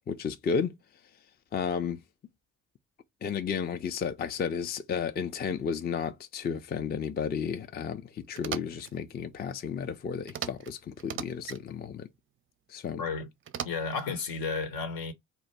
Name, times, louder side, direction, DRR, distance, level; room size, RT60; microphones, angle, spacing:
voice 1, 0.1-0.7 1.5-2.0 3.2-12.1 12.7-13.0, left 6 dB, 25° left, 0.4 m, -32 dB
sound 1, 8.3-8.9 10.3-10.7 11.0-11.6 13.5-14.1, right 8 dB, 35° right, 0.4 m, -38 dB
voice 2, 12.9-13.3 13.6-15.1, left 4 dB, 65° left, 0.9 m, -32 dB
2.4 x 2.2 x 4.0 m
hypercardioid pair, 50°, 37 cm